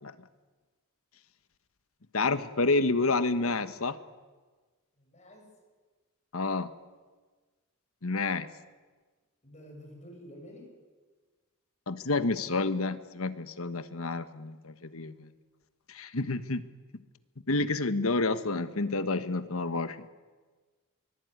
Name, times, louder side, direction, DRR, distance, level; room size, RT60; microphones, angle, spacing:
voice 1, 2.1-4.0 6.3-6.7 8.0-8.5 11.9-15.3 15.9-16.6 17.5-20.0, left 3 dB, 70° left, 11 dB, 1.3 m, -29 dB
voice 2, 5.0-5.5 9.4-10.7, equal, 30° left, 0 dB, 7.9 m, -49 dB
23.0 x 20.5 x 9.5 m, 1.4 s
head